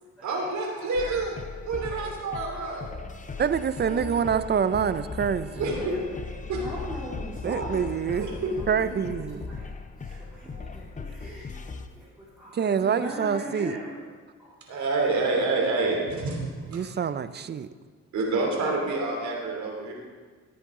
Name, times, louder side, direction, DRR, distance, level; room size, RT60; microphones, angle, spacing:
voice 1, 0.2-1.3 1.6-2.9 4.3-4.4 5.6-5.8 6.5-6.6 8.2-8.5 10.1-10.2 10.5-10.7 14.7-16.8 18.1-19.9, right 3 dB, 65° right, -1 dB, 3.0 m, -28 dB
sound 1, 0.9-11.9, left 4 dB, 25° left, 0.8 m, -38 dB
voice 2, 1.8-2.7 3.2-3.5 3.8-4.2 5.7-8.3 9.5-9.7 10.0-11.6 11.9-12.0 12.4-14.0 14.7-14.8, equal, 5° right, -9 dB, 2.9 m, -39 dB
voice 3, 3.4-5.6 7.4-8.3 8.7-9.5 12.5-13.8 16.7-17.7, right 7 dB, 35° right, 13 dB, 0.5 m, -26 dB
15.5 x 8.7 x 3.8 m, 1.5 s
cardioid pair, 90°, 30 cm